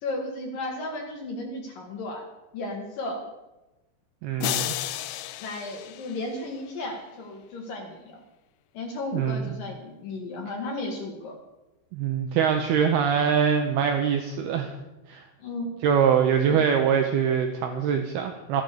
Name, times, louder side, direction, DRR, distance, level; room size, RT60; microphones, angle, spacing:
voice 1, 0.0-2.3 2.5-3.2 5.4-8.2 8.7-11.4 15.4-15.7, left 2 dB, 60° left, 2 dB, 2.6 m, -34 dB
voice 2, 4.2-4.7 9.1-9.5 11.9-14.7 15.1-15.3 15.8-18.6, right 7 dB, 85° right, 5 dB, 2.2 m, -23 dB
sound 1, 4.4-6.8, left 14 dB, 80° left, 2.8 m, -33 dB
14.5 x 10.5 x 6.7 m, 1.0 s
omnidirectional pair, 5.7 m